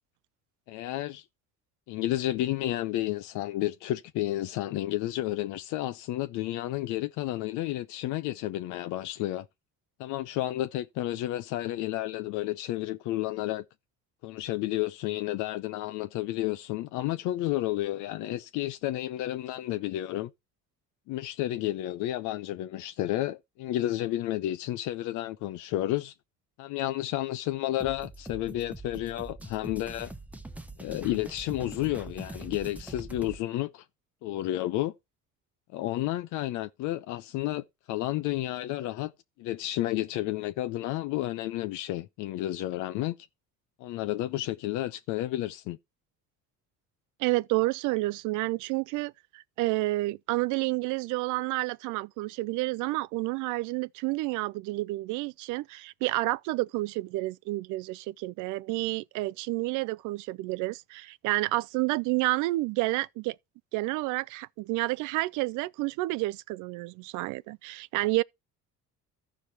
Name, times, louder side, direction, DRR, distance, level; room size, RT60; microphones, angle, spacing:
voice 1, 0.7-1.2 1.9-9.5 10.0-13.6 14.2-20.3 21.1-26.1 26.6-30.1 30.8-33.8 34.2-34.9 35.7-39.1 39.4-43.2 43.8-45.8, left 15 dB, 85° left, 0.6 m, -31 dB
sound 1, 27.8-33.4, right 2 dB, 5° right, 0.7 m, -43 dB
voice 2, 47.2-63.4 63.7-68.2, right 20 dB, 90° right, 0.4 m, -30 dB
14.0 x 5.0 x 4.4 m
cardioid pair, 130°, 30 cm